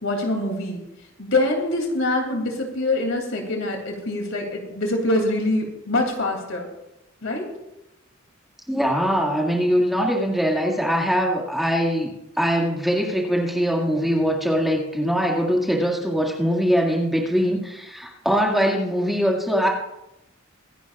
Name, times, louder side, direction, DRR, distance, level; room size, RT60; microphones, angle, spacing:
voice 1, 0.0-0.8 1.2-6.7 7.2-7.5, left 2 dB, 70° left, 2 dB, 2.8 m, -24 dB
voice 2, 8.7-19.7, equal, ahead, -1 dB, 2.0 m, -22 dB
24.0 x 11.0 x 2.4 m, 0.87 s
head